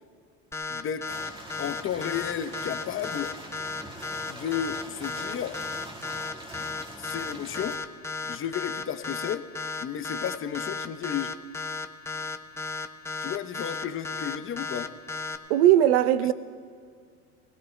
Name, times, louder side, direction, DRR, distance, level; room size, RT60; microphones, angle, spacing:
sound 1, 0.5-15.4, left 4 dB, 10° left, 0.7 m, -34 dB
voice 1, 0.7-1.2 1.6-3.3 4.3-5.6 7.0-7.8 8.3-9.5 9.8-11.4 13.2-14.9, left 9 dB, 40° left, 0.8 m, -33 dB
sound 2, 1.1-7.8, right 1 dB, 15° right, 1.7 m, -44 dB
voice 2, 15.5-16.3, right 12 dB, 80° right, 0.7 m, -19 dB
24.0 x 17.0 x 2.2 m
supercardioid pair, 90°, 33 cm